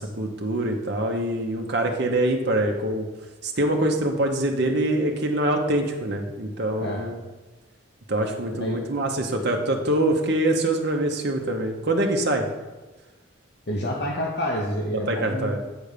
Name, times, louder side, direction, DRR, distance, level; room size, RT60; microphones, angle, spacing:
voice 1, 0.0-3.1 3.4-7.2 8.1-12.4 14.9-15.6, right 1 dB, 55° right, 2 dB, 1.0 m, -24 dB
voice 2, 13.7-15.5, equal, 55° left, -1 dB, 0.8 m, -28 dB
9.1 x 3.5 x 6.7 m, 1.2 s
head